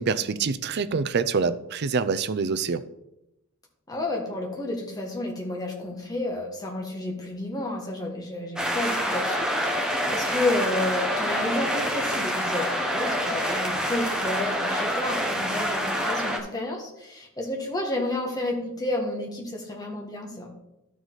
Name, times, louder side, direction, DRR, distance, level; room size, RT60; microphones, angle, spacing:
voice 1, 0.0-2.8, right 5 dB, 50° right, 13 dB, 0.4 m, -26 dB
voice 2, 3.9-20.5, left 2 dB, 15° left, 0 dB, 1.4 m, -31 dB
sound 1, 8.6-16.4, equal, 5° right, 0.9 m, -27 dB
12.0 x 4.8 x 4.0 m, 0.88 s
head